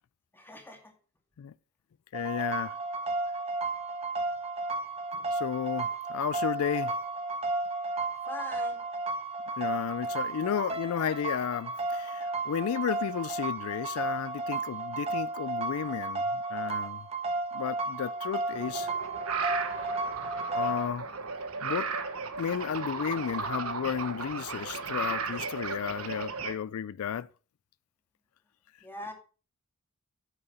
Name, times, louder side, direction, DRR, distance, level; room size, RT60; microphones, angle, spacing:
voice 1, 0.3-0.9 8.3-8.8 28.8-29.1, left 1 dB, 10° left, 2.2 m, -42 dB
voice 2, 2.1-2.8 5.3-6.9 9.6-17.1 17.5-18.9 19.7-19.9 20.5-21.1 21.6-21.9 22.4-27.3, left 8 dB, 80° left, 0.4 m, -33 dB
sound 1, 2.1-20.9, right 3 dB, 30° right, 1.3 m, -33 dB
sound 2, 18.5-26.5, right 5 dB, 90° right, 1.3 m, -35 dB
8.8 x 6.9 x 5.5 m
head